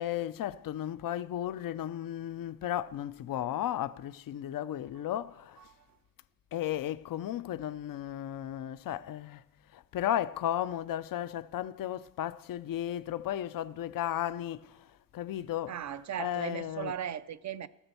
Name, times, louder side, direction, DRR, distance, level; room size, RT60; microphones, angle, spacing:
voice 1, 0.0-5.6 6.5-9.4 9.7-14.8 15.1-15.8 16.2-17.0, left 11 dB, 65° left, 0.5 m, -34 dB
voice 2, 15.7-17.7, right 10 dB, 50° right, 0.6 m, -37 dB
14.0 x 7.3 x 6.8 m
cardioid pair, 95°, 37 cm